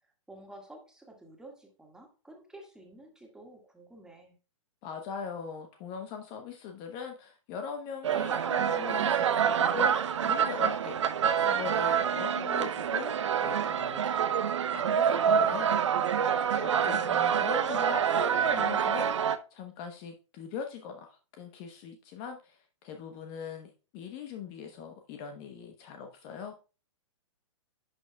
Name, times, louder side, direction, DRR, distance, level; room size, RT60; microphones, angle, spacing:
voice 1, 0.3-4.4 16.1-16.5, right 1 dB, 5° right, 1 dB, 1.8 m, -51 dB
voice 2, 4.8-14.3 14.7-16.0 16.5-26.6, left 6 dB, 30° left, 5 dB, 0.9 m, -41 dB
sound 1, 8.0-19.4, right 8 dB, 65° right, 0.6 m, -27 dB
11.0 x 6.3 x 2.3 m, 0.33 s
figure-of-eight pair, 120°, 16 cm